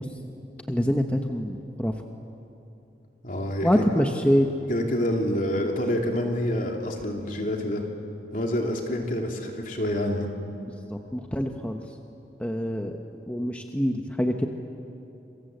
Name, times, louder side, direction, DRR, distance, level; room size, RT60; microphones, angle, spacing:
voice 1, 0.7-1.9 3.6-4.5 10.9-11.8 12.4-13.0 13.3-14.5, equal, 10° left, 4 dB, 1.0 m, -25 dB
voice 2, 3.2-4.0 4.7-7.8 8.3-10.3, left 1 dB, 50° left, 1 dB, 3.2 m, -27 dB
27.5 x 23.0 x 8.0 m, 2.8 s
head